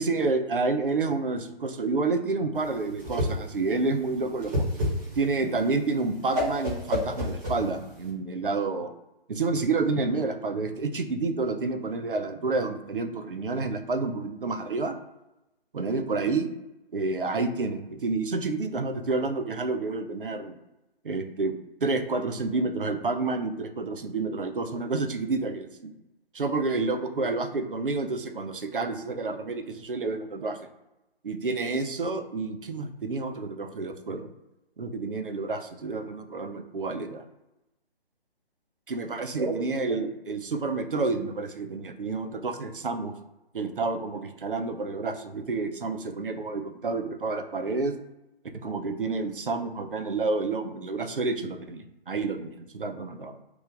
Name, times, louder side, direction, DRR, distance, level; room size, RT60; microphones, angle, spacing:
voice 1, 0.0-4.7 5.2-8.9 9.3-15.0 15.7-16.5 16.9-20.5 21.0-21.5 21.8-25.9 26.3-30.6 31.2-34.3 34.8-37.2 38.9-43.1 43.5-47.9 48.5-53.4, right 3 dB, 60° right, 6 dB, 0.6 m, -29 dB
Whoosh swoosh swish, 2.6-8.1, left 1 dB, 20° right, 1.1 m, -30 dB
3.1 x 2.4 x 3.8 m, 0.94 s
figure-of-eight pair, 140°, 31 cm